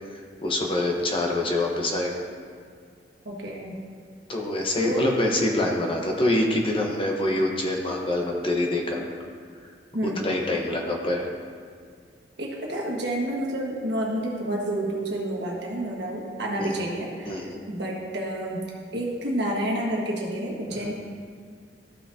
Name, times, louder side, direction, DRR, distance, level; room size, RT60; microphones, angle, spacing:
voice 1, 0.1-2.1 4.3-9.0 10.2-11.3 16.6-16.7 17.3-17.6 20.7-20.9, left 1 dB, 30° left, 0 dB, 0.9 m, -25 dB
voice 2, 3.2-3.8 4.8-5.0 9.9-10.4 12.4-18.6 18.9-20.9, right 1 dB, 65° right, -3 dB, 1.5 m, -29 dB
13.5 x 5.9 x 2.7 m, 2.1 s
head